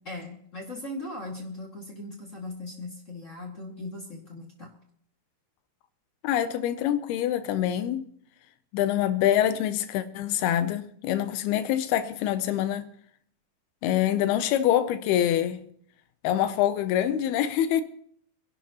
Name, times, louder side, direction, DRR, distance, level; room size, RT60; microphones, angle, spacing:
voice 1, 0.0-4.7, left 2 dB, 30° left, 1.4 m, -39 dB
voice 2, 6.2-8.1 8.7-12.9 13.8-15.6 16.2-17.8, left 11 dB, 85° left, 2.6 m, -25 dB
25.0 x 11.0 x 2.9 m
omnidirectional pair, 4.5 m